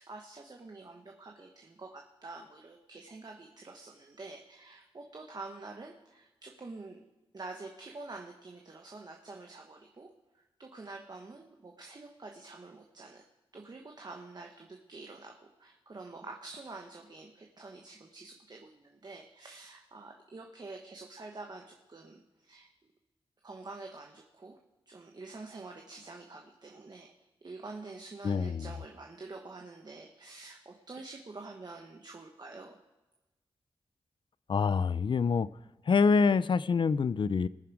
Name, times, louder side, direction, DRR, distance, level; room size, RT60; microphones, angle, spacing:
voice 1, 0.0-7.0 7.3-13.2 13.5-22.7 23.4-24.6 24.9-27.1 27.4-32.8, right 3 dB, 45° right, 1 dB, 1.4 m, -47 dB
voice 2, 28.2-28.7 34.5-35.5 35.9-37.5, left 5 dB, 55° left, 17 dB, 0.5 m, -26 dB
20.0 x 7.3 x 4.8 m, 1.1 s
cardioid pair, 55°, 10 cm